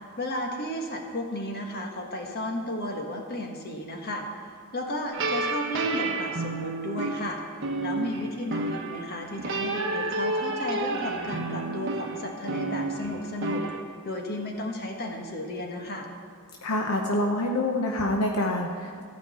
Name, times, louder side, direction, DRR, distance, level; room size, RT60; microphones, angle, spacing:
voice 1, 0.2-4.2 4.7-7.4 7.8-13.6 14.0-16.1, left 1 dB, 45° left, 2 dB, 1.5 m, -33 dB
sound 1, 5.1-13.8, right 2 dB, 60° right, 1.2 m, -30 dB
voice 2, 16.6-19.0, left 1 dB, 70° left, 1 dB, 0.9 m, -26 dB
15.0 x 5.2 x 8.5 m, 2.2 s
head